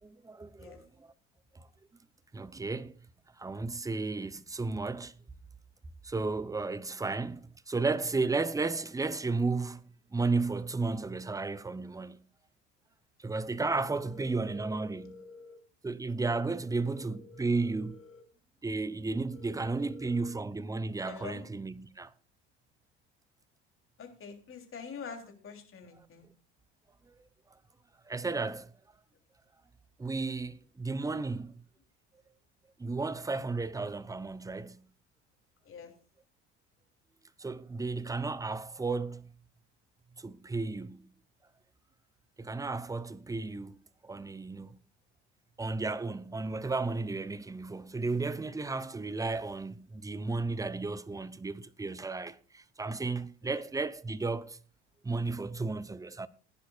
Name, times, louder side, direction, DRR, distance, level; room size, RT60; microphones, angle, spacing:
voice 1, 0.0-1.1 1.5-1.7 2.3-3.1 3.4-5.2 6.0-12.2 13.2-15.2 15.8-18.0 18.6-22.1 27.1-27.2 28.1-28.7 30.0-31.6 32.8-34.9 37.4-39.3 40.2-41.1 42.4-43.8 44.0-44.8 45.6-54.6 55.0-56.3, right 3 dB, 10° right, 0.7 m, -33 dB
voice 2, 14.0-15.6 16.6-18.2 19.3-20.3 21.0-21.4 24.0-26.3 35.6-35.9 53.4-53.7, left 5 dB, 40° left, 3.3 m, -47 dB
19.5 x 10.0 x 2.4 m
hypercardioid pair, 70°, 34 cm